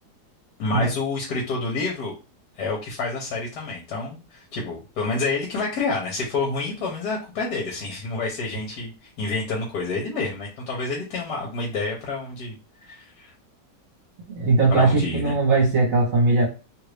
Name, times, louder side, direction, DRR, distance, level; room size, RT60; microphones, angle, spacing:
voice 1, 0.6-2.1 2.6-8.9 9.2-12.5 12.8-13.3 14.7-15.3, left 3 dB, 70° left, -2 dB, 1.3 m, -28 dB
voice 2, 14.3-16.4, right 3 dB, 55° right, -2 dB, 1.3 m, -19 dB
3.0 x 2.5 x 3.2 m, 0.31 s
omnidirectional pair, 1.9 m